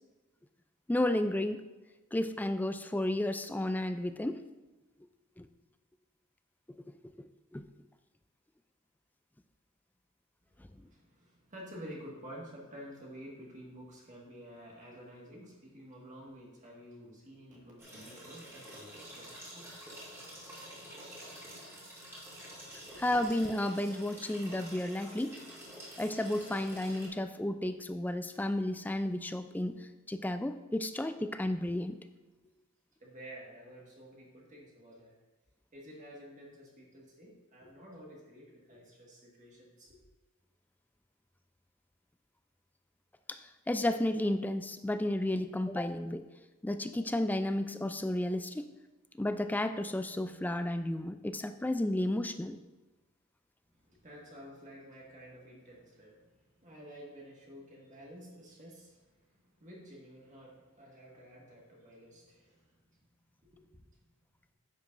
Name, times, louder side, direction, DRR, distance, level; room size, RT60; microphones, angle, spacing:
voice 1, 0.9-1.7 2.1-4.4 5.4-5.5 7.2-7.6 23.0-25.3 26.0-29.8 30.1-32.0 43.3-43.4 43.7-46.2 46.6-48.7 49.2-52.6, left 1 dB, 10° left, 10 dB, 0.3 m, -32 dB
voice 2, 10.5-20.0 20.7-21.2 21.6-21.7 22.8-23.0 32.4-32.5 33.0-35.2 35.7-40.0 53.7-63.0 63.5-63.8, equal, 35° right, -3 dB, 1.8 m, -51 dB
sound 1, 17.8-27.1, equal, 10° right, 2.6 m, -48 dB
10.0 x 8.2 x 2.6 m, 1.2 s
head